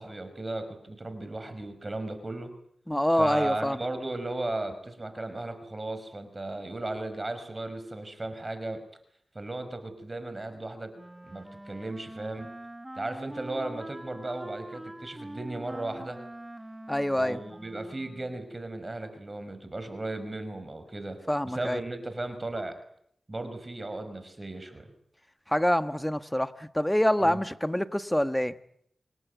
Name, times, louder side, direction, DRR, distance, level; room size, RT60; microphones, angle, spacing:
voice 1, 0.0-2.5 3.2-8.8 9.4-10.9 11.2-12.5 13.0-16.2 17.2-21.2 21.4-22.8 23.3-24.9 27.2-27.4, right 2 dB, 35° right, 9 dB, 5.2 m, -36 dB
voice 2, 2.9-3.8 16.9-17.4 21.3-21.8 25.5-28.5, equal, 10° left, 10 dB, 1.5 m, -26 dB
Wind instrument woodwind instrument, 11.0-18.5, right 1 dB, 15° right, 1.6 m, -44 dB
27.0 x 19.5 x 9.5 m, 0.71 s
cardioid pair, 55°, 0 cm